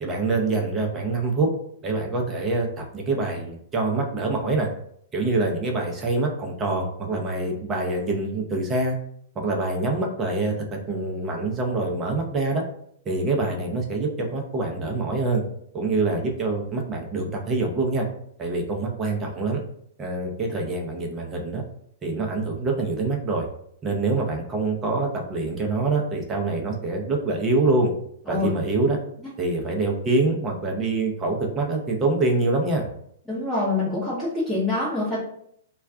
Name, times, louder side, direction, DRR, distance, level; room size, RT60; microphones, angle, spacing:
voice 1, 0.0-1.5 1.8-4.7 5.1-9.0 9.4-12.6 13.1-15.4 15.7-18.1 18.4-19.6 20.0-21.6 22.0-23.5 23.8-27.9 28.3-29.0 29.4-32.9, right 3 dB, 25° right, 1 dB, 0.7 m, -25 dB
voice 2, 33.3-35.2, left 2 dB, ahead, -11 dB, 0.9 m, -25 dB
2.3 x 2.2 x 3.6 m, 0.69 s
hypercardioid pair, 115°, 0 cm